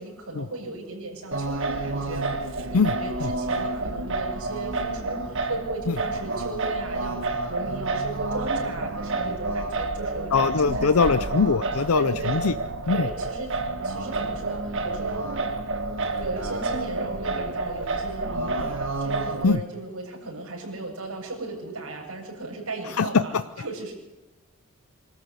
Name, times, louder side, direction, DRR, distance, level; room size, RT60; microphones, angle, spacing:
voice 1, 0.0-2.3 2.7-11.3 12.0-12.3 12.9-15.3 16.2-23.9, right 2 dB, 90° right, 0 dB, 7.7 m, -36 dB
Singing, 1.3-19.4, right 3 dB, 60° right, 1.8 m, -29 dB
voice 2, 10.3-12.5 12.9-13.1 19.4-19.6 23.0-23.2, left 5 dB, 80° left, 13 dB, 0.6 m, -21 dB
25.0 x 13.5 x 8.1 m, 1.0 s
head